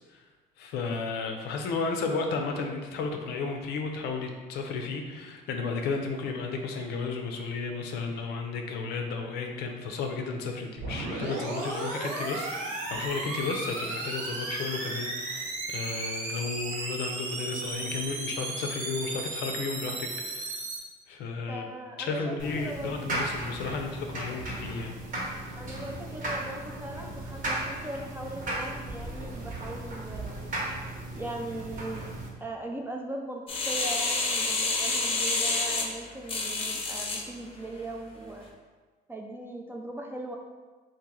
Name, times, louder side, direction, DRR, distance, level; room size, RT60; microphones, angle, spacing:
voice 1, 0.6-20.6 21.1-21.7 22.0-24.9, left 4 dB, 75° left, 3 dB, 0.5 m, -33 dB
sound 1, 10.8-20.8, right 2 dB, 85° right, 0.7 m, -35 dB
voice 2, 21.5-23.1 25.6-30.6 31.1-32.1 32.4-38.5 39.1-40.4, right 1 dB, 15° right, 1 dB, 0.3 m, -39 dB
sound 2, 22.4-32.3, right 1 dB, 55° right, 0.9 m, -36 dB
sound 3, 33.5-37.2 37.8-37.9, left 3 dB, 35° left, 0.6 m, -28 dB
3.0 x 2.6 x 3.8 m, 1.3 s
cardioid pair, 110°, 17 cm